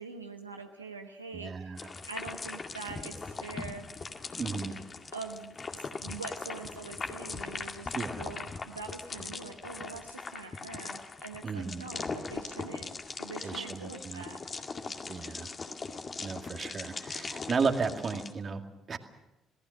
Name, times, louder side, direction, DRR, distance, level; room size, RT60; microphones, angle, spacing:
voice 1, 0.0-3.8 5.1-12.9 13.2-14.4, right 4 dB, 90° right, 3 dB, 1.1 m, -44 dB
voice 2, 1.3-1.9 4.4-4.8 7.9-8.2 11.4-11.8 13.4-14.2 15.1-15.5 16.2-19.0, right 5 dB, 40° right, 6 dB, 2.1 m, -34 dB
sound 1, 1.8-18.3, left 4 dB, 35° left, 2.2 m, -40 dB
27.5 x 18.5 x 6.4 m, 0.94 s
figure-of-eight pair, 45°, 0 cm